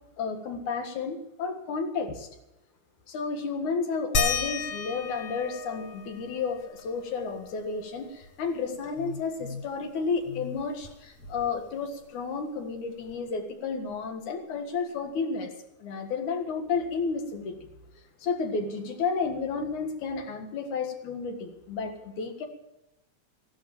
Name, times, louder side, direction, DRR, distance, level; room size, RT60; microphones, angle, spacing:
voice 1, 0.2-2.3 3.1-15.5 15.8-17.6 18.2-22.5, left 5 dB, 75° left, 5 dB, 3.2 m, -32 dB
sound 1, 4.1-9.3 9.6-9.7 10.1-11.8 13.1-13.2 13.9-14.0, left 3 dB, 55° left, 2.4 m, -35 dB
15.5 x 11.5 x 7.2 m, 0.86 s
omnidirectional pair, 3.5 m